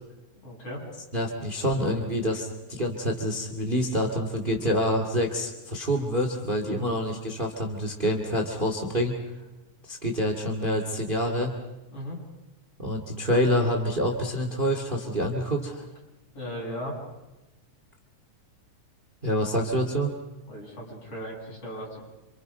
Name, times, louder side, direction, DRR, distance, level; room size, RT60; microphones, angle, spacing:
voice 1, 0.4-0.8 6.7-6.9 11.9-12.2 16.3-17.0 20.5-22.0, equal, 50° left, -3 dB, 8.5 m, -37 dB
voice 2, 1.1-9.2 9.9-11.5 12.8-15.9 19.2-20.2, equal, 20° right, 3 dB, 2.2 m, -27 dB
28.0 x 27.5 x 5.5 m, 1.0 s
omnidirectional pair, 3.3 m